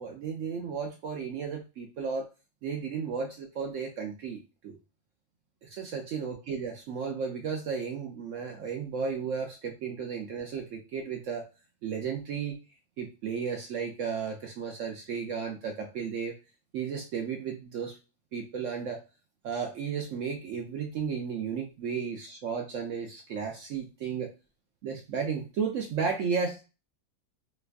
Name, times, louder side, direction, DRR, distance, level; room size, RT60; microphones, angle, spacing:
voice 1, 0.0-2.3 2.6-4.4 4.6-4.8 5.6-11.4 11.8-12.6 13.0-16.3 16.7-18.0 18.3-19.0 19.4-24.3 24.8-26.6, right 6 dB, 65° right, 2 dB, 0.8 m, -34 dB
3.0 x 2.5 x 3.3 m, 0.31 s
omnidirectional pair, 1.6 m